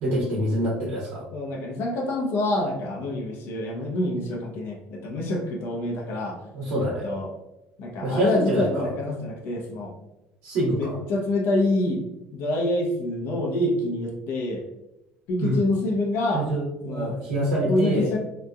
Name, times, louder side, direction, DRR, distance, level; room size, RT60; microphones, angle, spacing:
voice 1, 0.0-1.2 6.5-7.0 8.0-8.9 10.4-11.0 15.4-15.6 16.3-18.1, right 1 dB, 75° right, -5 dB, 1.0 m, -26 dB
voice 2, 1.3-6.4 6.8-7.3 7.8-9.9 10.7-14.6 15.3-16.5 16.8-17.2 17.7-18.2, left 1 dB, 70° left, 0 dB, 0.7 m, -26 dB
2.9 x 2.5 x 2.3 m, 0.94 s
supercardioid pair, 85°, 4 cm